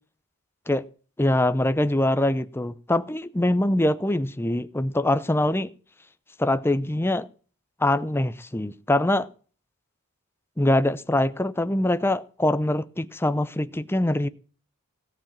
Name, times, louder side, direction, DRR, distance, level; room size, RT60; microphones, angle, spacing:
voice 1, 1.2-5.7 6.4-7.3 7.8-9.3 10.6-14.3, left 1 dB, 10° left, 0.6 m, -23 dB
17.5 x 7.3 x 7.4 m
head